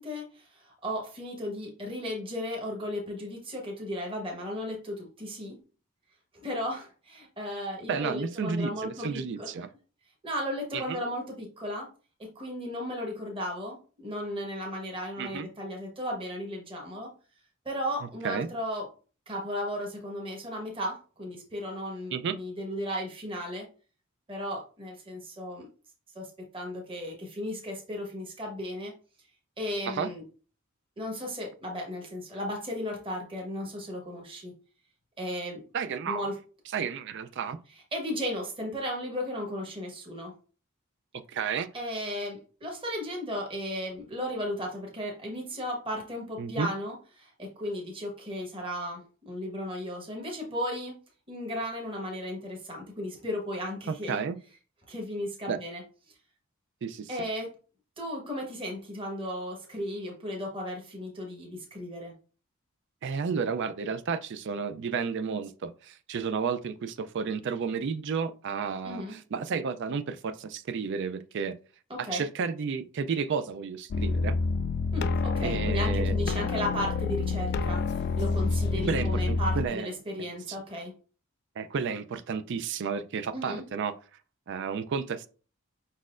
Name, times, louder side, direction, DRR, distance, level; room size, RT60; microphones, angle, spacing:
voice 1, 0.0-5.6 6.4-9.5 10.2-11.9 12.2-17.1 17.6-18.8 19.3-23.7 24.3-25.7 26.1-28.9 29.6-30.2 31.0-34.5 35.2-35.6 36.1-36.4 37.9-40.3 41.7-50.9 51.3-54.2 54.9-55.8 57.1-57.5 58.0-62.1 68.8-69.1 71.9-72.2 74.9-80.9 83.3-83.6, equal, 25° right, 1.1 m, -35 dB
voice 2, 7.9-9.7 10.7-11.0 15.2-15.5 18.2-18.5 22.1-22.3 29.9-30.1 35.7-36.3 36.7-37.6 41.3-41.7 46.4-46.7 53.9-54.4 55.5-55.6 56.8-57.1 63.0-71.5 72.0-74.4 75.4-76.3 78.9-79.9 80.5-80.6 81.6-83.9 84.5-85.3, right 6 dB, 55° right, 0.4 m, -32 dB
sound 1, 73.9-79.7, left 4 dB, 50° left, 0.3 m, -28 dB
5.3 x 4.1 x 2.4 m
head